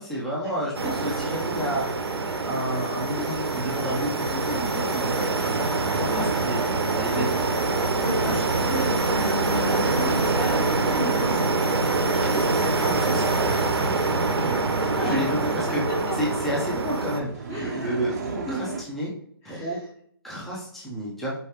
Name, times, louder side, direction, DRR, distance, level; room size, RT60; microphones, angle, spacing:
voice 1, 0.0-1.9 2.4-6.6 6.9-7.4 8.2-8.4 12.2-15.8 16.2-19.1 19.4-19.8 20.2-21.3, equal, ahead, -6 dB, 0.6 m, -31 dB
sound 1, 0.7-17.2, right 3 dB, 85° right, 0.6 m, -25 dB
voice 2, 0.8-1.3 2.3-2.4 3.1-3.4 4.3-4.8 6.0-6.3 7.9-11.6 15.0-15.3 15.7-16.2 17.5-18.7 19.4-19.7, equal, 20° left, -5 dB, 1.4 m, -34 dB
sound 2, 7.4-18.8, right 5 dB, 40° right, 0.5 m, -42 dB
4.5 x 3.1 x 2.8 m, 0.65 s
figure-of-eight pair, 145°, 13 cm